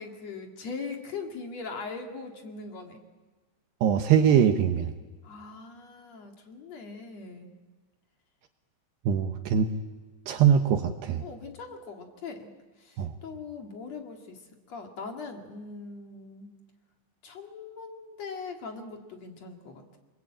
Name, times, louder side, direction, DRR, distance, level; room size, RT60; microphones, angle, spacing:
voice 1, 0.0-3.0 5.2-7.5 11.2-12.5 12.8-14.4 14.7-16.5 17.2-20.0, left 4 dB, 50° left, 4 dB, 2.3 m, -41 dB
voice 2, 3.8-4.9 9.1-9.7 10.3-11.2 13.0-13.1, right 8 dB, 75° right, 7 dB, 2.6 m, -22 dB
27.5 x 22.0 x 8.9 m, 1.3 s
omnidirectional pair, 5.9 m